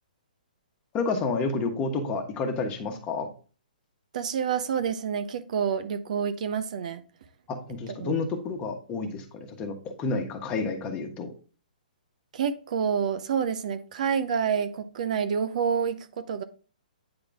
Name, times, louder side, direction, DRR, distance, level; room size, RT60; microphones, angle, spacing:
voice 1, 0.9-3.3 7.5-9.2 9.6-11.3, left 4 dB, 20° left, 1.2 m, -30 dB
voice 2, 4.1-7.0 8.0-8.1 12.3-16.4, right 7 dB, 55° right, 0.7 m, -28 dB
8.8 x 3.8 x 3.5 m
hypercardioid pair, 145°, 5 cm